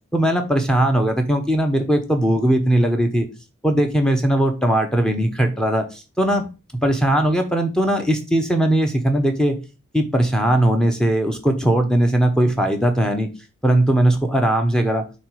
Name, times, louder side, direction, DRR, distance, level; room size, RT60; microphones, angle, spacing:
voice 1, 0.1-3.3 3.6-6.4 6.8-9.6 9.9-13.3 13.6-15.0, right 1 dB, 5° left, 4 dB, 0.8 m, -19 dB
7.0 x 3.0 x 4.9 m, 0.31 s
head